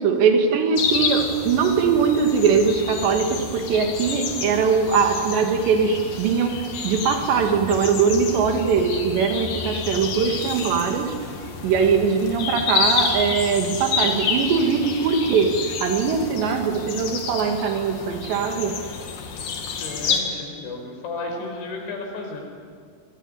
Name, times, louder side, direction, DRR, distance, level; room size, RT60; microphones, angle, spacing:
voice 1, 0.0-11.2 11.6-18.8, right 6 dB, 70° right, 5 dB, 4.1 m, -21 dB
sound 1, 0.8-20.2, left 5 dB, 55° left, 3.7 m, -29 dB
voice 2, 19.6-22.4, left 3 dB, 85° left, 2 dB, 7.4 m, -33 dB
25.5 x 21.5 x 10.0 m, 2.1 s
omnidirectional pair, 5.2 m